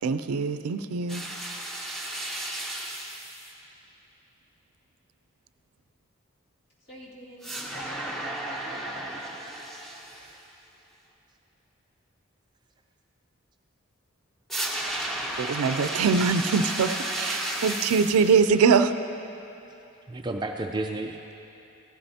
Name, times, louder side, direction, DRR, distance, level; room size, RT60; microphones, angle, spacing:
voice 1, 0.0-1.2 15.4-18.9, right 5 dB, 90° right, 11 dB, 0.4 m, -23 dB
sound 1, 1.1-3.5 7.4-10.3 14.5-18.3, right 1 dB, ahead, 0.8 m, -33 dB
voice 2, 6.8-8.9 15.9-16.1 18.2-18.3, equal, 50° left, -7 dB, 2.2 m, -45 dB
voice 3, 20.1-21.3, right 2 dB, 20° right, 3 dB, 0.3 m, -32 dB
15.5 x 12.0 x 2.8 m, 2.9 s
head